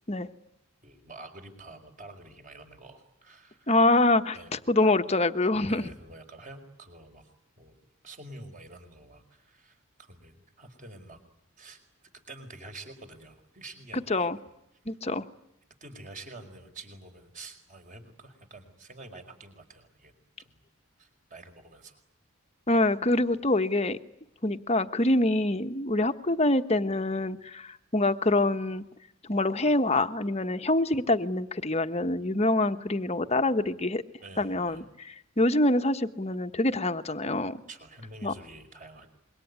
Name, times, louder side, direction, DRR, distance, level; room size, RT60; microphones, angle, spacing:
voice 1, 0.8-3.7 4.3-4.5 5.4-7.3 7.6-7.8 8.0-11.2 11.6-14.3 15.8-20.6 21.0-22.0 34.2-34.8 37.7-39.1, right 2 dB, 35° right, 5 dB, 4.9 m, -48 dB
voice 2, 3.7-5.8 14.1-14.4 14.9-15.2 22.7-24.0 24.4-28.8 29.3-34.0 34.4-37.6 38.2-38.3, left 2 dB, 30° left, 9 dB, 1.1 m, -25 dB
26.0 x 23.0 x 9.7 m, 0.80 s
head